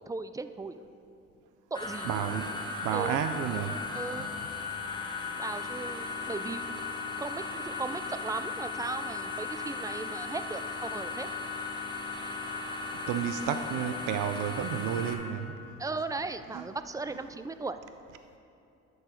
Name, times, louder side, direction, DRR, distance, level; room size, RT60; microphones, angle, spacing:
voice 1, 0.1-0.8 1.7-2.5 2.9-3.2 3.9-4.4 5.3-6.8 7.2-11.3 15.8-17.8, right 3 dB, 10° right, 11 dB, 0.3 m, -37 dB
sound 1, 1.7-15.1, left 4 dB, 15° left, 1.2 m, -37 dB
voice 2, 2.0-3.9 4.2-4.3 12.9-15.8 16.5-16.6, right 9 dB, 90° right, 9 dB, 0.5 m, -32 dB
10.5 x 7.0 x 4.4 m, 2.7 s
cardioid pair, 90°, 30 cm